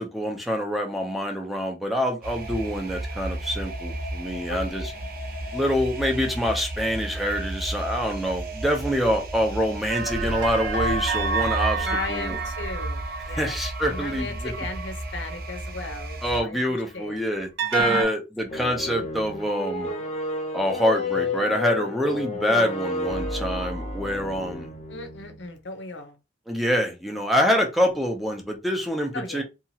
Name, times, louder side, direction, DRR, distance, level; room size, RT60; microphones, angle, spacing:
voice 1, 0.0-4.9 5.5-12.4 13.3-14.5 16.2-19.9 20.5-24.7 26.5-29.4, equal, ahead, 0.5 m, -26 dB
sound 1, 2.2-16.4, right 1 dB, 55° right, 0.6 m, -34 dB
sound 2, 9.9-16.1 17.6-18.0, right 4 dB, 85° right, 0.8 m, -29 dB
voice 2, 11.8-13.5 13.8-17.2 17.8-18.1 22.4-22.8 24.9-26.2 29.1-29.4, left 3 dB, 80° left, 0.7 m, -36 dB
sound 3, 18.5-25.4, left 2 dB, 35° left, 0.7 m, -31 dB
2.8 x 2.3 x 2.7 m
head